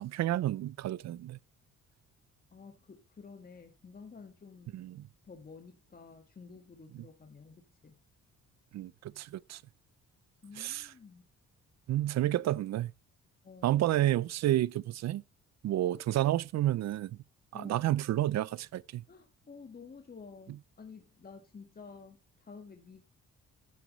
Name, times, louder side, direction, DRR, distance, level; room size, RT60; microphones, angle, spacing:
voice 1, 0.0-1.4 4.7-5.0 8.7-9.6 10.6-10.9 11.9-12.9 13.6-15.2 15.6-17.2 17.5-19.0, right 13 dB, 60° right, 0.5 m, -30 dB
voice 2, 2.5-4.7 5.2-8.0 10.4-11.2 13.4-13.8 17.5-17.9 19.1-23.1, left 5 dB, 30° left, 1.7 m, -51 dB
11.5 x 9.4 x 3.1 m
cardioid pair, 90°, 30 cm